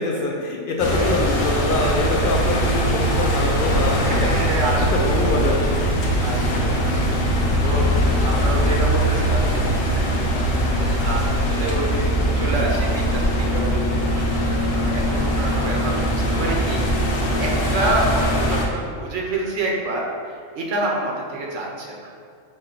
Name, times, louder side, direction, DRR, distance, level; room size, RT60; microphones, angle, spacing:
voice 1, 0.0-4.3 4.8-5.9, left 2 dB, 60° left, -1 dB, 0.6 m, -24 dB
sound 1, 0.8-18.7, equal, 85° left, 1.1 m, -21 dB
voice 2, 4.0-5.2 6.2-7.4 7.6-10.1 10.8-16.8 17.2-20.0 20.5-22.1, right 2 dB, 75° right, -1 dB, 1.0 m, -28 dB
6.4 x 2.2 x 3.7 m, 2.3 s
omnidirectional pair, 1.3 m